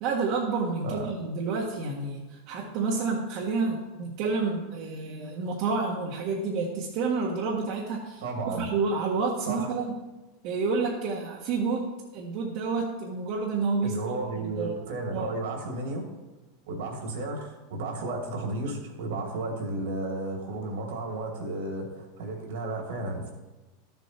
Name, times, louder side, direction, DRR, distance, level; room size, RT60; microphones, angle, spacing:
voice 1, 0.0-8.2 8.6-9.9 10.4-11.9 12.1-13.9 14.4-14.7 15.1-15.3, right 4 dB, 55° right, -2 dB, 1.5 m, -29 dB
voice 2, 8.2-8.7 9.5-9.7 13.8-16.1 16.7-23.3, right 2 dB, 75° right, 2 dB, 2.7 m, -33 dB
12.5 x 7.1 x 4.5 m, 1.1 s
hypercardioid pair, 115°, 0 cm